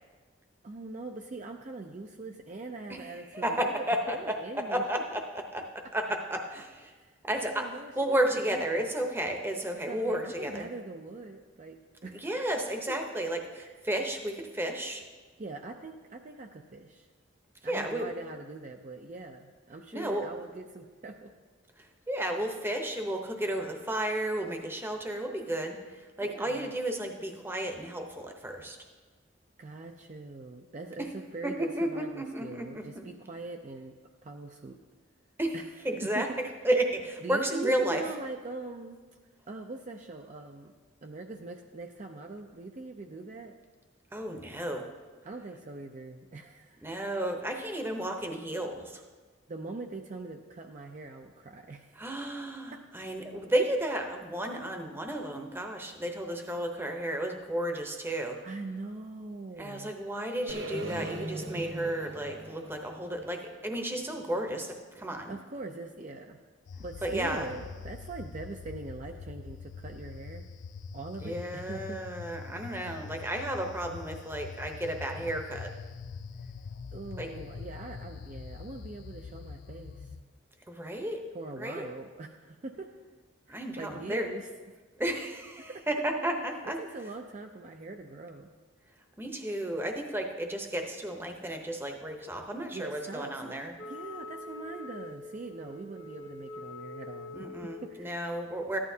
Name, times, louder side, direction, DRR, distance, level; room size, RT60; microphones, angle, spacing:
voice 1, 0.6-4.8 6.9-7.2 7.4-8.9 9.9-12.3 12.9-13.0 13.6-13.8 15.4-17.1 17.6-21.3 26.2-26.7 29.6-33.9 34.2-34.8 35.5-35.6 36.0-36.3 37.2-39.0 39.5-40.7 41.0-43.5 45.2-46.8 49.5-52.1 52.7-52.8 58.4-59.9 65.3-66.4 66.8-70.5 70.9-72.0 76.9-80.1 81.3-82.9 83.5-84.5 85.6-85.9 86.8-88.5 92.7-97.5 97.8-98.3, right 3 dB, 40° right, 3 dB, 0.4 m, -42 dB
voice 2, 3.3-5.6 5.9-6.9 7.2-10.7 12.1-15.0 17.6-18.1 19.9-20.3 22.1-28.8 31.0-31.1 31.4-33.1 35.4-35.6 35.8-38.0 44.1-44.9 46.8-49.0 52.0-58.4 59.6-65.3 67.0-67.5 71.2-75.7 77.2-77.5 80.7-81.2 81.6-81.9 83.5-84.3 85.0-86.8 89.2-93.7 97.3-98.8, right 1 dB, 10° right, 3 dB, 0.8 m, -33 dB
sound 1, 60.5-64.5, right 1 dB, 70° right, 1.0 m, -40 dB
sound 2, 66.7-80.2, left 5 dB, 65° left, 0.4 m, -44 dB
Wind instrument woodwind instrument, 93.8-97.9, left 2 dB, 85° left, 1.4 m, -44 dB
14.0 x 11.0 x 2.7 m, 1.4 s
head